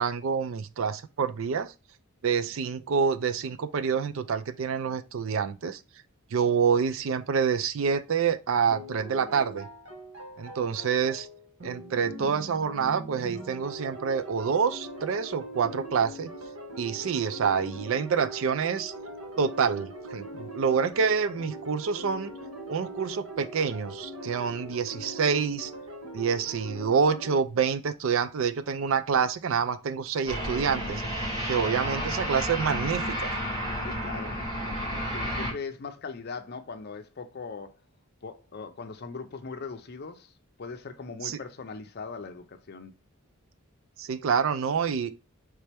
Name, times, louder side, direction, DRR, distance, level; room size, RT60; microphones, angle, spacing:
voice 1, 0.0-1.7 2.2-5.8 6.3-9.7 10.4-11.3 11.6-16.3 16.8-18.9 19.4-22.3 22.7-25.7 26.1-31.0 31.5-33.3 41.2-41.4 44.0-45.1, right 6 dB, 60° right, 0.4 m, -27 dB
sound 1, 8.7-27.3, right 1 dB, 75° right, 1.3 m, -41 dB
sound 2, 30.3-35.5, equal, 20° right, 2.4 m, -31 dB
voice 2, 33.8-37.8 38.2-40.3 40.6-42.9, left 4 dB, 45° left, 0.5 m, -40 dB
4.2 x 3.3 x 3.3 m
head